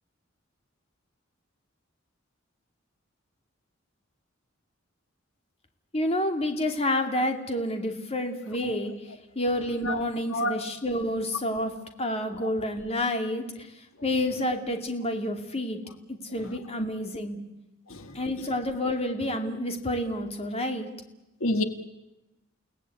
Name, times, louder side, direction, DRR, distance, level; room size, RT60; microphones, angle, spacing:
voice 1, 5.9-8.9 9.4-13.7 14.0-15.8 16.1-17.4 18.1-20.9, left 1 dB, 30° left, 5 dB, 2.5 m, -29 dB
voice 2, 8.6-8.7 9.8-10.0 10.3-10.6 17.9-18.0 21.4-21.6, left 1 dB, 80° left, 8 dB, 1.7 m, -27 dB
29.5 x 18.5 x 8.5 m, 0.96 s
head